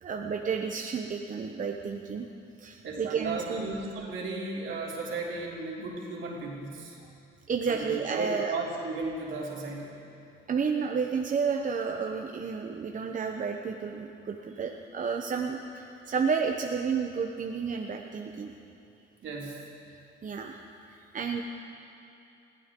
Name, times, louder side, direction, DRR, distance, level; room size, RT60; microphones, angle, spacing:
voice 1, 0.0-2.3 2.6-3.7 7.5-8.5 10.5-18.5 20.2-20.6 20.9-21.4, right 5 dB, 40° right, 2 dB, 0.9 m, -31 dB
voice 2, 2.8-7.0 7.7-9.9 19.2-19.6, right 3 dB, 75° right, -3 dB, 3.2 m, -35 dB
21.0 x 15.0 x 3.8 m, 2.7 s
cardioid pair, 90°, 20 cm